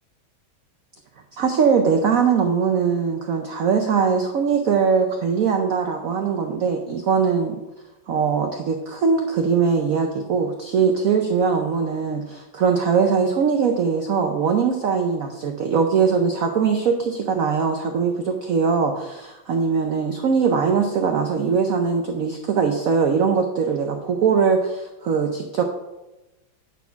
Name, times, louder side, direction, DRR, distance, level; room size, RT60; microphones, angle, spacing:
voice 1, 1.3-7.6 8.1-25.6, right 6 dB, 75° right, 4 dB, 0.8 m, -21 dB
9.6 x 4.2 x 5.6 m, 1.0 s
omnidirectional pair, 2.3 m